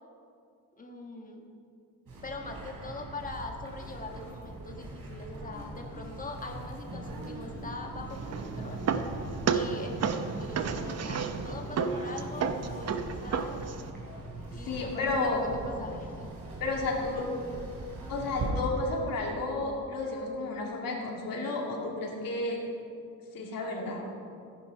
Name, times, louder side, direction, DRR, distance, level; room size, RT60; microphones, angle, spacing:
voice 1, 0.8-1.4 2.2-8.8 9.5-13.6 14.5-16.3, left 2 dB, 25° left, 2 dB, 1.5 m, -42 dB
sound 1, 2.1-18.5, right 2 dB, 80° right, 3.8 m, -41 dB
sound 2, 8.1-13.9, right 6 dB, 50° right, 0.8 m, -32 dB
voice 2, 14.7-15.5 16.6-17.2 18.1-22.6 23.3-24.1, left 2 dB, 90° left, -2 dB, 2.7 m, -32 dB
14.5 x 10.5 x 5.3 m, 2.4 s
wide cardioid pair, 160°, 33 cm